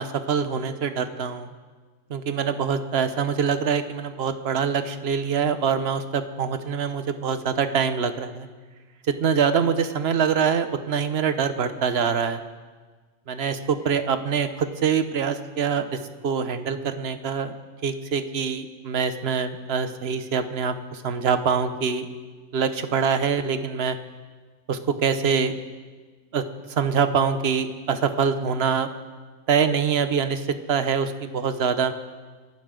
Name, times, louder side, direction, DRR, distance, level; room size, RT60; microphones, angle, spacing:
voice 1, 0.0-1.5 2.1-8.5 9.2-12.4 13.3-15.9 16.2-17.5 17.8-22.1 22.5-24.0 24.7-25.5 26.3-26.4 26.7-28.9 29.5-30.4 30.7-31.9, right 6 dB, 55° right, 9 dB, 1.1 m, -24 dB
27.0 x 11.5 x 3.8 m, 1.4 s
omnidirectional pair, 1.3 m